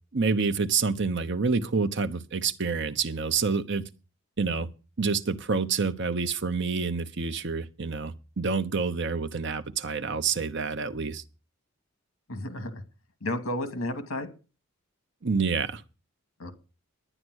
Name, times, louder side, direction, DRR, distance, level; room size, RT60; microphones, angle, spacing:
voice 1, 0.1-3.8 4.4-4.7 5.0-11.2 15.2-15.8, right 4 dB, 55° right, 0.9 m, -28 dB
voice 2, 12.3-12.8 13.2-14.3 16.4-16.5, left 1 dB, 75° left, 2.3 m, -32 dB
11.0 x 10.5 x 6.3 m
head